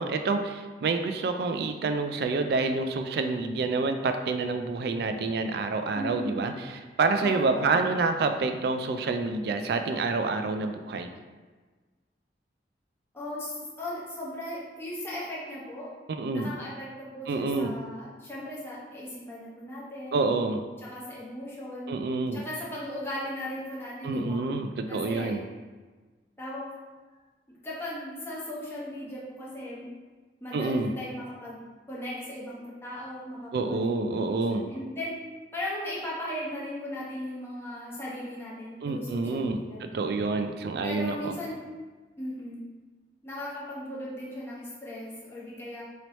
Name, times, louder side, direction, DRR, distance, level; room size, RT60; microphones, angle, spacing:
voice 1, 0.0-6.5 7.0-11.1 16.1-16.5 17.3-17.7 20.1-20.6 21.9-22.4 24.0-25.4 30.5-30.9 33.5-34.7 38.8-41.3, right 3 dB, 60° right, 7 dB, 0.3 m, -28 dB
voice 2, 5.9-6.4 7.2-8.0 13.1-15.9 16.3-20.2 20.8-22.0 22.3-24.4 24.9-25.4 26.4-26.8 27.5-29.9 30.4-31.6 31.9-35.1 35.5-40.1 40.8-41.6 42.2-42.6 43.2-45.8, left 1 dB, 15° left, -6 dB, 0.8 m, -37 dB
3.2 x 3.0 x 4.0 m, 1.4 s
head